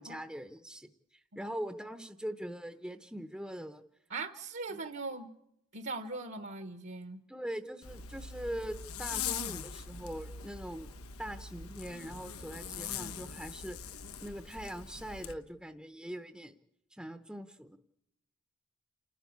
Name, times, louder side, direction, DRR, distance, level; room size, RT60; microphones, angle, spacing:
voice 1, 0.0-3.8 4.7-4.8 7.3-10.9 11.2-13.8 14.2-16.5 16.9-17.8, equal, 5° right, 7 dB, 0.9 m, -42 dB
voice 2, 4.1-5.3 5.7-7.2, right 3 dB, 55° right, 8 dB, 1.2 m, -40 dB
Zipper (clothing), 7.8-15.3, left 7 dB, 90° left, 1.3 m, -42 dB
29.0 x 13.0 x 9.4 m, 0.81 s
head